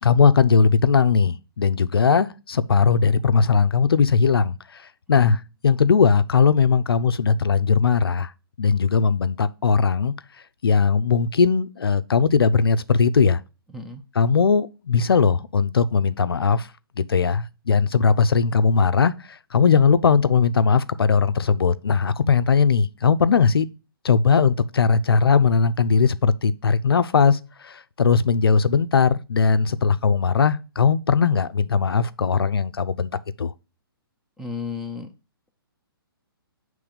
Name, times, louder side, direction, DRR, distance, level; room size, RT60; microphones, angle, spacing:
voice 1, 0.0-8.3 8.6-10.1 10.6-13.4 14.2-16.7 17.0-23.7 24.0-33.1 33.4-33.5, left 5 dB, 75° left, 0.4 m, -19 dB
voice 2, 34.4-35.1, left 4 dB, 5° right, 0.5 m, -33 dB
6.9 x 3.2 x 5.1 m
figure-of-eight pair, 130°, 13 cm